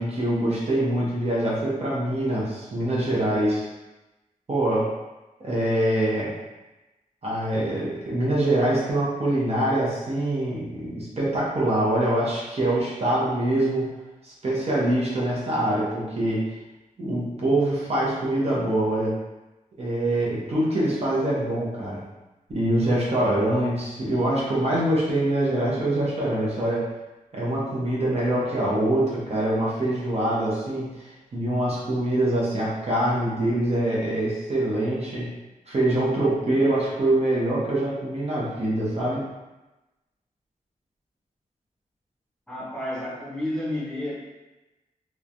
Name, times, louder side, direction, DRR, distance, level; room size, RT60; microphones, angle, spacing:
voice 1, 0.0-3.7 4.5-4.9 5.4-6.3 7.2-13.9 14.2-16.4 17.0-19.2 19.8-22.0 22.5-26.9 27.3-35.3 35.7-39.3, right 1 dB, 45° right, -6 dB, 0.7 m, -24 dB
voice 2, 42.5-44.1, left 1 dB, 5° left, -7 dB, 0.7 m, -30 dB
3.1 x 2.1 x 2.5 m, 1.1 s
wide cardioid pair, 125°, 15 cm